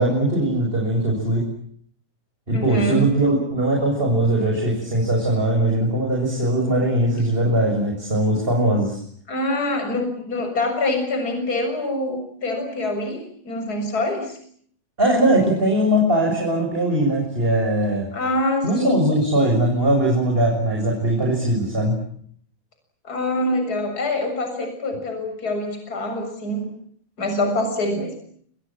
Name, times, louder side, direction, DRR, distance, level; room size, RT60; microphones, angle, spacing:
voice 1, 0.0-1.5 2.5-9.0 15.0-18.1 18.6-22.0, right 1 dB, 15° right, -1 dB, 7.5 m, -20 dB
voice 2, 2.5-3.0 9.3-14.4 18.1-19.1 23.0-26.7 27.2-28.1, left 1 dB, 25° left, 5 dB, 7.4 m, -25 dB
29.5 x 26.5 x 7.6 m, 0.63 s
omnidirectional pair, 4.3 m